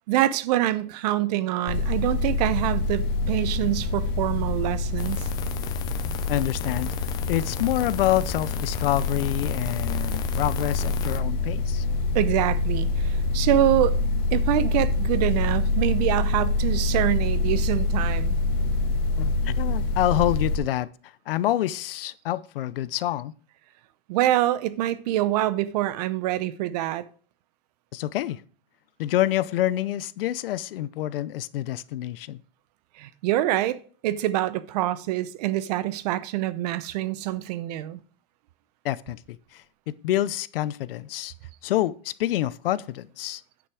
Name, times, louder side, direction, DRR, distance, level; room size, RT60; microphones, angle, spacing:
voice 1, 0.1-5.3 12.1-14.0 14.3-18.3 24.1-27.1 33.0-38.0, right 14 dB, 45° right, 0.6 m, -25 dB
sound 1, 1.7-20.6, left 3 dB, 40° left, 1.5 m, -26 dB
sound 2, 5.0-11.2, left 10 dB, 15° left, 0.3 m, -37 dB
voice 2, 6.3-6.9 7.3-11.8 19.2-23.3 27.9-28.4 29.0-32.4 38.8-41.3 41.6-43.4, left 13 dB, 70° left, 0.6 m, -27 dB
9.9 x 6.0 x 4.7 m
supercardioid pair, 155°, 30 cm